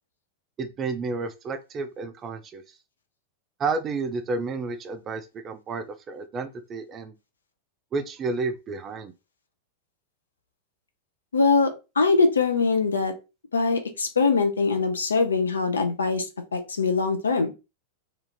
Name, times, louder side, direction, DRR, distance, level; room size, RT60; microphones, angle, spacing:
voice 1, 0.6-2.8 3.6-7.1 7.9-9.1, right 4 dB, 25° right, 0.3 m, -31 dB
voice 2, 11.3-13.1 13.5-16.3 16.5-17.5, left 4 dB, 70° left, 0.5 m, -22 dB
2.4 x 2.4 x 3.0 m
figure-of-eight pair, 90°, 0 cm